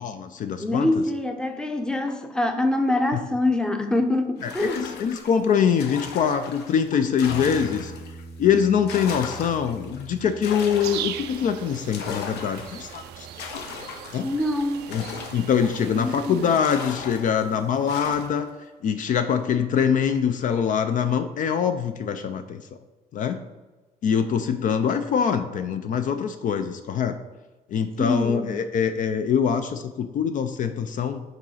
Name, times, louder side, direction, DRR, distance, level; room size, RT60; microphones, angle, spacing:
voice 1, 0.0-1.0 3.1-3.2 4.4-7.9 8.4-13.3 14.1-14.3 14.9-15.0 15.3-18.5 18.8-22.6 23.1-23.4 24.0-27.2 27.7-31.2, left 7 dB, 50° left, 9 dB, 0.5 m, -24 dB
voice 2, 0.6-4.8 14.2-14.9 15.9-16.5 28.0-28.5, left 2 dB, 5° left, 6 dB, 0.6 m, -25 dB
sound 1, 4.4-8.2 8.6-16.1 16.5-18.5, left 5 dB, 80° left, 0.8 m, -38 dB
Bass guitar, 7.3-13.5, right 2 dB, 25° left, 0.9 m, -44 dB
sound 2, 10.8-16.6, right 12 dB, 75° right, 0.4 m, -39 dB
5.3 x 4.0 x 5.5 m, 1.2 s
cardioid pair, 110°, 17 cm